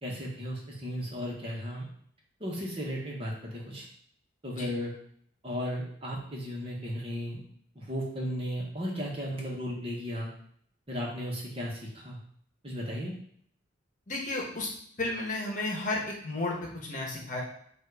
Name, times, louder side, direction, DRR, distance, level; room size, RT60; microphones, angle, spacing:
voice 1, 0.0-1.9 2.4-3.8 4.4-4.9 5.4-7.4 7.7-10.3 10.9-12.2 12.6-13.1, equal, 30° right, -3 dB, 1.4 m, -35 dB
voice 2, 14.1-14.7 15.0-17.4, left 2 dB, 40° left, -2 dB, 1.3 m, -33 dB
7.5 x 2.7 x 4.8 m, 0.64 s
head